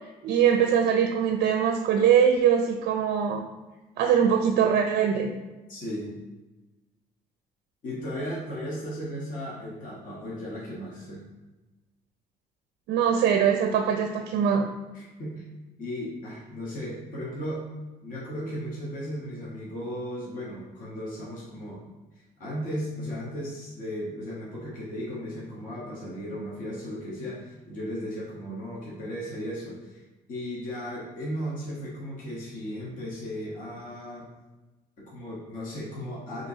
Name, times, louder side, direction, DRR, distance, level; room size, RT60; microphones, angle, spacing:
voice 1, 0.2-3.4 4.0-5.3 12.9-14.7, right 8 dB, 75° right, 4 dB, 0.4 m, -22 dB
voice 2, 5.7-6.2 7.8-11.2 14.9-15.4 15.8-17.7 18.0-21.8 22.4-30.0 30.3-34.3 35.0-36.5, equal, 50° left, -6 dB, 1.2 m, -36 dB
5.4 x 3.0 x 2.7 m, 1.1 s
cardioid pair, 110°, 17 cm